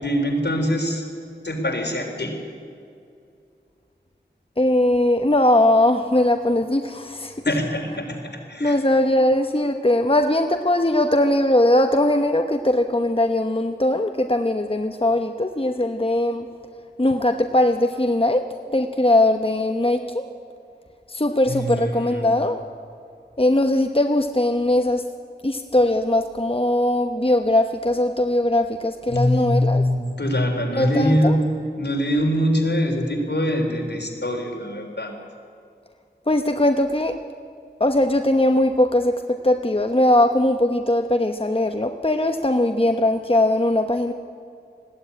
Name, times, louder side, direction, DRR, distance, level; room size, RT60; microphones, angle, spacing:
voice 1, 0.0-1.0 1.4-2.4 7.4-8.8 21.5-22.4 29.1-31.4 31.8-35.1, equal, 75° left, 1 dB, 3.9 m, -23 dB
voice 2, 4.6-7.3 8.6-16.5 17.0-18.4 18.7-20.3 21.1-22.6 23.4-25.0 25.4-29.8 30.7-31.4 36.3-37.1 37.8-44.1, left 1 dB, 30° left, 5 dB, 1.0 m, -20 dB
20.0 x 15.5 x 9.8 m, 2.4 s
wide cardioid pair, 40°, 18 cm